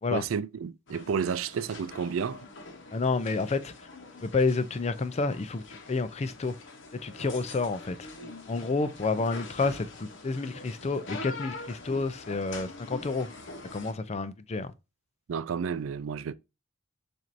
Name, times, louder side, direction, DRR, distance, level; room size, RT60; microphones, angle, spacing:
voice 1, 0.1-2.4 15.3-16.3, right 6 dB, 85° right, 0.4 m, -31 dB
sound 1, 0.9-13.9, left 3 dB, 65° left, 1.0 m, -44 dB
voice 2, 2.9-3.9 4.2-6.6 6.9-8.1 8.5-13.3 13.7-14.7, left 3 dB, 35° left, 0.5 m, -29 dB
7.4 x 2.7 x 2.6 m
head